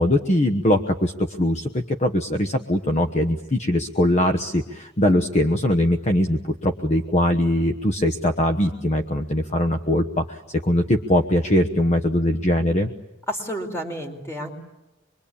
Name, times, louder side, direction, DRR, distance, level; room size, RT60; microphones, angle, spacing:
voice 1, 0.0-12.9, left 1 dB, 35° left, 7 dB, 1.2 m, -21 dB
voice 2, 13.3-14.5, equal, 15° left, 3 dB, 4.6 m, -30 dB
26.0 x 23.5 x 8.7 m, 0.99 s
head